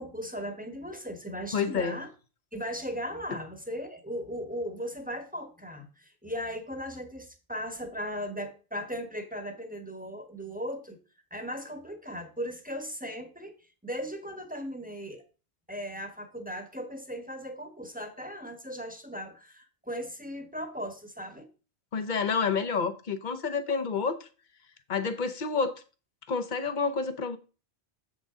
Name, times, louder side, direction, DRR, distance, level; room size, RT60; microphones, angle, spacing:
voice 1, 0.0-2.1 2.5-11.0 11.3-15.2 15.7-21.5, equal, 10° right, 1.1 m, -37 dB
voice 2, 1.5-2.0 21.9-24.3 24.9-25.8 26.3-27.4, left 5 dB, 45° left, 0.9 m, -29 dB
7.5 x 6.2 x 3.7 m
omnidirectional pair, 1.2 m